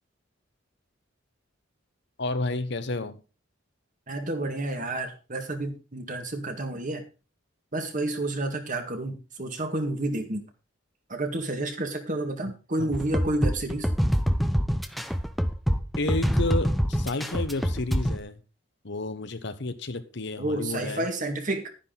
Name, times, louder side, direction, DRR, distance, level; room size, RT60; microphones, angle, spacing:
voice 1, 2.2-3.2 12.8-12.9 16.0-18.4 18.8-21.1, left 2 dB, 60° left, 10 dB, 1.1 m, -31 dB
voice 2, 4.1-7.0 7.7-10.5 11.1-13.9 20.4-21.7, right 2 dB, 40° right, 5 dB, 2.0 m, -30 dB
sound 1, 12.9-18.2, equal, ahead, 0.7 m, -25 dB
11.0 x 10.0 x 4.0 m, 0.32 s
head